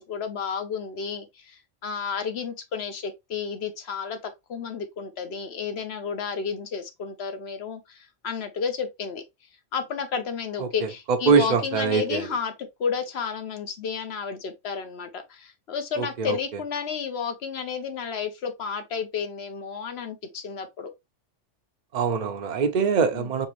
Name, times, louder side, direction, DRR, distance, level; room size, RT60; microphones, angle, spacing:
voice 1, 0.0-9.2 9.7-12.5 12.8-20.9 23.1-23.3, left 6 dB, 60° left, 1.0 m, -31 dB
voice 2, 11.3-12.3 16.0-16.4 21.9-23.5, right 5 dB, 45° right, 0.7 m, -23 dB
5.2 x 3.0 x 3.0 m
omnidirectional pair, 1.2 m